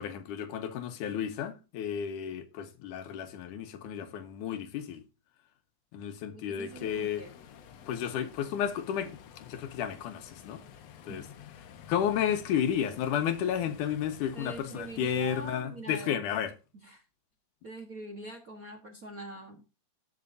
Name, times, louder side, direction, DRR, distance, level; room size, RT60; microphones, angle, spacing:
voice 1, 0.0-5.0 5.9-7.3 7.9-10.6 11.0-11.2 11.9-16.5, left 9 dB, 90° left, 2.8 m, -32 dB
voice 2, 6.3-7.3 11.1-11.2 14.3-16.2 16.8-17.0 17.6-19.6, right 2 dB, 45° right, 1.1 m, -44 dB
sound 1, 6.7-15.6, left 8 dB, 65° left, 2.0 m, -51 dB
17.5 x 6.6 x 2.6 m
omnidirectional pair, 3.5 m